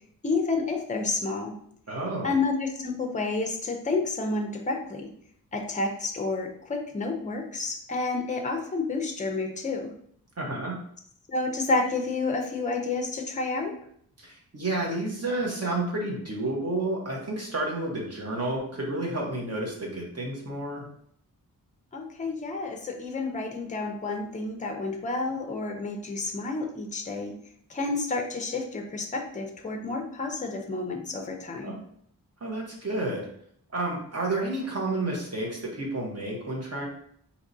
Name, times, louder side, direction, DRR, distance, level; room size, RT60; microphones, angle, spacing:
voice 1, 0.2-1.5 2.2-5.1 5.5-9.9 11.3-13.7 21.9-27.3 27.7-31.8, left 3 dB, 20° left, 3 dB, 0.5 m, -30 dB
voice 2, 1.9-2.3 10.4-10.7 14.2-20.8 31.6-31.7 32.4-33.3 33.7-36.9, right 2 dB, 45° right, -2 dB, 1.1 m, -30 dB
4.8 x 2.9 x 2.7 m, 0.65 s
wide cardioid pair, 155°, 36 cm